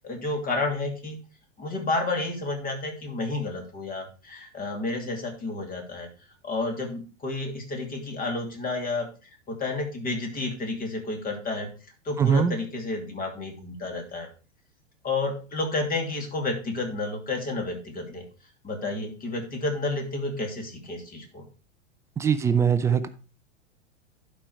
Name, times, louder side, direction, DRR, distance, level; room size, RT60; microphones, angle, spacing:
voice 1, 0.0-1.2 1.6-6.1 6.4-9.1 9.5-11.7 12.0-14.3 15.0-18.2 18.6-21.4, left 2 dB, 25° left, 4 dB, 2.6 m, -30 dB
voice 2, 12.2-12.6 22.2-23.1, right 7 dB, 10° right, 11 dB, 0.3 m, -22 dB
11.0 x 5.3 x 4.4 m, 0.35 s
hypercardioid pair, 100°, 37 cm